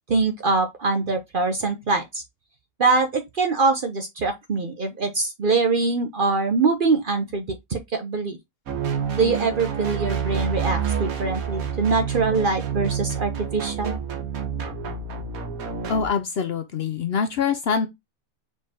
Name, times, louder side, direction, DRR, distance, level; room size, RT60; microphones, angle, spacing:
voice 1, 0.1-2.2 2.8-8.4 9.2-14.0, right 3 dB, 50° right, 0.7 m, -23 dB
sound 1, 8.7-16.1, right 7 dB, 90° right, 1.4 m, -28 dB
voice 2, 15.9-17.9, left 6 dB, 60° left, 0.7 m, -24 dB
4.7 x 3.4 x 2.7 m
omnidirectional pair, 1.4 m